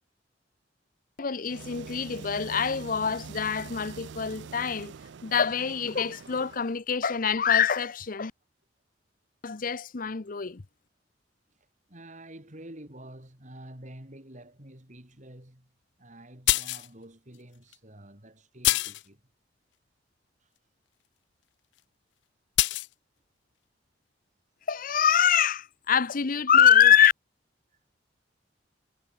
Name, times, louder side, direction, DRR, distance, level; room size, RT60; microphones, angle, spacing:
voice 1, 1.2-4.9 5.2-8.3 9.4-10.6 24.7-27.1, left 8 dB, 50° left, 0.8 m, -24 dB
sound 1, 1.4-6.8, right 5 dB, 75° right, 0.5 m, -44 dB
voice 2, 11.5-15.7 16.0-19.2 20.4-20.5 27.7-27.8, right 1 dB, 45° right, 5.0 m, -48 dB
sound 2, 16.5-16.9 17.7-17.8 18.6-19.1 22.6-22.9, left 18 dB, 70° left, 0.3 m, -24 dB
head